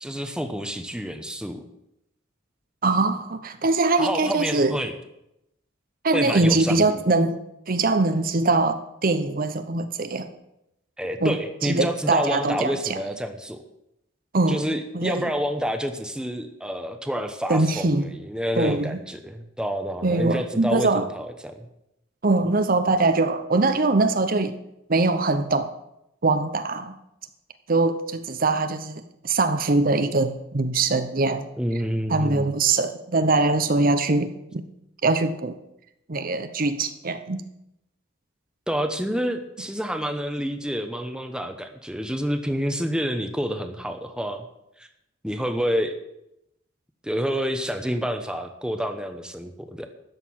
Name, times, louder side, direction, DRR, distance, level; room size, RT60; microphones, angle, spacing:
voice 1, 0.0-1.6 4.0-4.9 6.1-7.0 11.0-13.6 14.5-21.7 31.6-32.6 38.7-44.4 44.8-44.9 45.2-46.0 47.0-49.9, equal, 5° right, 7 dB, 1.0 m, -28 dB
voice 2, 2.8-4.8 6.0-7.4 7.7-10.3 11.2-11.4 11.6-13.0 14.3-14.6 14.9-15.2 17.5-18.1 18.6-19.0 20.0-21.1 22.2-24.6 24.9-25.7 26.2-27.0 27.7-31.5 32.1-34.7 35.0-35.6 36.1-37.4, right 3 dB, 45° right, 10 dB, 0.9 m, -22 dB
13.5 x 6.7 x 9.4 m, 0.84 s
head